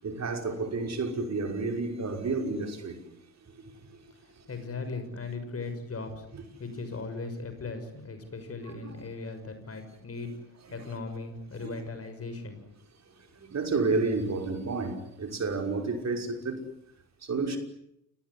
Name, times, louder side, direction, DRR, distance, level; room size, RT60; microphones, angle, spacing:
voice 1, 0.0-3.0 3.5-3.6 13.4-16.6 17.2-17.6, right 3 dB, 35° right, 5.7 m, -30 dB
voice 2, 4.4-6.3 6.6-10.3 10.7-12.6, left 3 dB, 30° left, 6.7 m, -38 dB
29.5 x 19.5 x 10.0 m
figure-of-eight pair, 55°, 48 cm